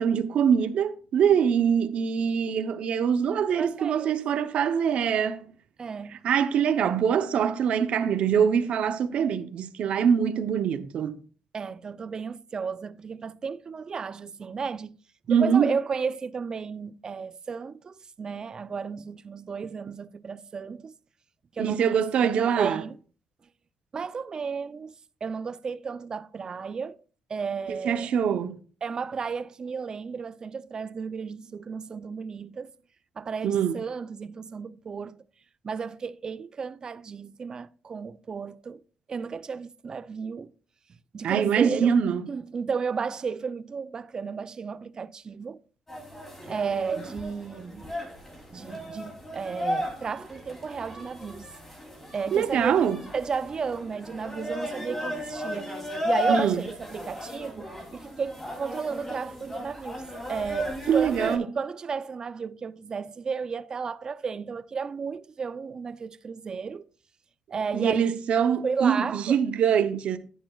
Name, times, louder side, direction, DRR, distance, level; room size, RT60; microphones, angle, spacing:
voice 1, 0.0-5.4 6.2-11.2 15.3-15.7 21.6-22.8 27.8-28.6 33.4-33.8 41.2-42.2 52.3-53.0 56.3-56.6 60.9-61.4 67.7-70.2, right 7 dB, 70° right, 0.8 m, -24 dB
voice 2, 3.6-4.1 5.8-6.2 11.5-15.0 15.3-20.9 21.5-22.9 23.9-24.9 25.2-27.0 27.3-28.1 28.8-32.7 33.2-35.2 35.6-38.8 39.1-40.5 41.1-42.0 42.3-45.6 46.4-47.9 48.5-51.5 52.1-52.9 53.1-55.8 56.0-66.9 67.5-68.1 68.6-69.4, right 5 dB, 35° right, 0.5 m, -33 dB
sound 1, 45.9-61.4, equal, 15° left, 3.1 m, -35 dB
11.0 x 10.0 x 2.4 m
cardioid pair, 110°, 2 cm